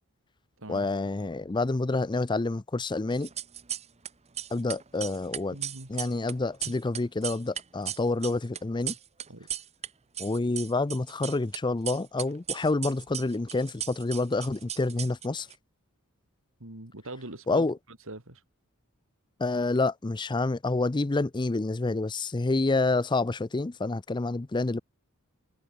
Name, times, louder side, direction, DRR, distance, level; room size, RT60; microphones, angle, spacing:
voice 1, 0.7-3.3 4.5-5.6 5.9-8.9 10.2-15.5 17.5-17.7 19.4-24.8, left 3 dB, 20° left, 0.5 m, -28 dB
sound 1, 3.1-4.1 4.3-9.9 10.1-11.6 11.9-15.5, right 10 dB, 30° right, 0.9 m, -36 dB
voice 2, 5.5-5.9 6.6-6.7 9.3-9.5 16.6-18.4, right 2 dB, 65° right, 3.6 m, -42 dB
head